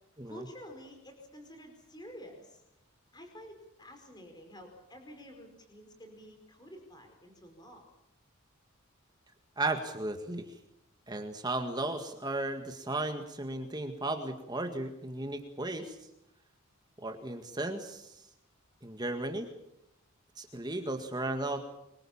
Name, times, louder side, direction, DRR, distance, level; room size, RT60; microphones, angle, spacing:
voice 1, 0.3-2.6 3.1-7.9, equal, 20° left, 4 dB, 4.7 m, -50 dB
voice 2, 9.6-10.6 11.1-16.0 17.0-18.2 18.8-19.5 20.4-21.6, right 2 dB, 20° right, 5 dB, 1.9 m, -35 dB
25.5 x 23.0 x 7.2 m, 0.82 s
head